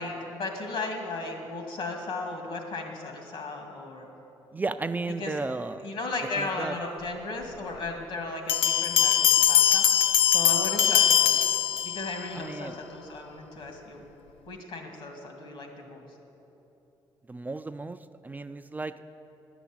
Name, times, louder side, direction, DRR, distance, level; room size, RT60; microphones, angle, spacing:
voice 1, 0.0-4.1 5.2-5.3 5.8-9.8 10.3-11.4 11.8-14.0 14.5-16.1, left 2 dB, 70° left, 3 dB, 2.0 m, -35 dB
voice 2, 4.5-5.9 6.4-6.7 12.3-12.8 17.3-18.0 18.2-19.0, right 3 dB, 20° right, 10 dB, 0.3 m, -33 dB
Bell, 8.5-12.3, left 10 dB, 85° left, 0.4 m, -22 dB
10.5 x 7.1 x 8.7 m, 3.0 s
cardioid pair, 85°, 9 cm